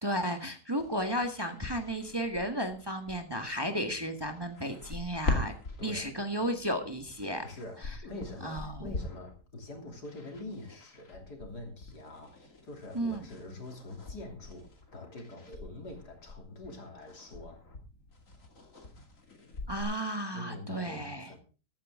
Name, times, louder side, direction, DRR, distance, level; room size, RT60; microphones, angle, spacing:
voice 1, 0.0-5.6 5.8-7.4 8.4-8.9 12.9-13.3 19.7-21.4, equal, 15° right, 5 dB, 1.5 m, -33 dB
sound 1, 0.8-19.8, left 3 dB, 50° left, 2.8 m, -42 dB
voice 2, 5.8-6.1 7.4-17.6 20.3-21.4, left 2 dB, 80° left, 3 dB, 3.7 m, -45 dB
14.5 x 12.5 x 3.7 m, 0.34 s
omnidirectional pair, 1.7 m